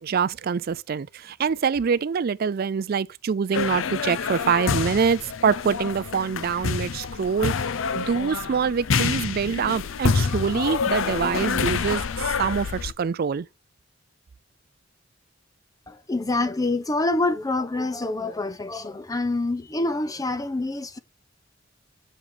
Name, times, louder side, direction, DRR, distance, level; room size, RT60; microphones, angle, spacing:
voice 1, 0.0-7.6 7.9-13.5, right 6 dB, 50° right, 0.4 m, -25 dB
sound 1, 3.5-12.9, left 5 dB, 90° left, 0.6 m, -27 dB
voice 2, 15.9-21.0, left 2 dB, 20° left, 0.6 m, -26 dB
7.3 x 6.5 x 3.4 m
head